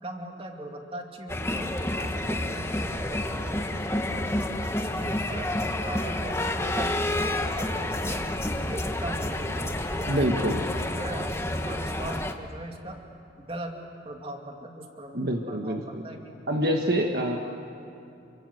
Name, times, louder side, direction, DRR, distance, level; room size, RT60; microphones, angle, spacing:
voice 1, 0.0-4.4 4.8-8.2 8.6-9.7 10.0-13.0 13.4-15.2 15.5-16.8, right 1 dB, 30° right, 2 dB, 2.6 m, -40 dB
sound 1, 1.3-12.3, left 1 dB, 15° left, 1.2 m, -29 dB
voice 2, 10.1-10.6 15.1-16.0 16.5-17.4, right 1 dB, 55° right, 2 dB, 1.6 m, -26 dB
29.0 x 25.0 x 7.9 m, 2.7 s
head